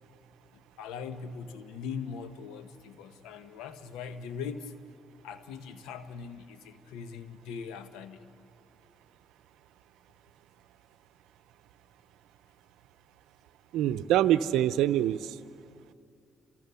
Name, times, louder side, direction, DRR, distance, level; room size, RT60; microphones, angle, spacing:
voice 1, 0.8-4.7 5.2-8.2 14.5-14.6, left 6 dB, 90° left, 11 dB, 1.1 m, -41 dB
voice 2, 13.7-15.4, right 12 dB, 85° right, 13 dB, 0.6 m, -25 dB
29.0 x 26.5 x 7.0 m, 2.6 s
supercardioid pair, 65°, 0 cm